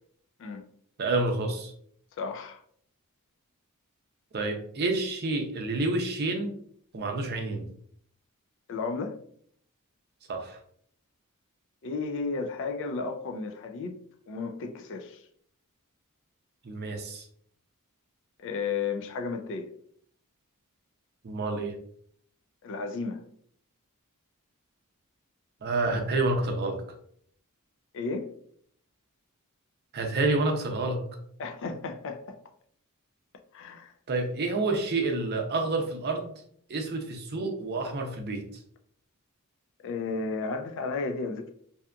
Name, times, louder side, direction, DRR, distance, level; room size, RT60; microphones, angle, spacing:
voice 1, 1.0-1.7 4.3-6.5 6.9-7.6 10.3-10.6 16.6-17.3 21.2-21.7 25.6-26.8 29.9-31.0 34.1-36.3 36.7-38.4, right 2 dB, 45° right, 0.5 m, -28 dB
voice 2, 2.2-2.6 8.7-9.2 11.8-14.0 14.3-15.2 18.4-19.7 22.6-23.2 27.9-28.3 31.4-32.4 33.5-33.9 39.8-41.5, left 4 dB, 55° left, 0.3 m, -33 dB
2.7 x 2.4 x 2.2 m
head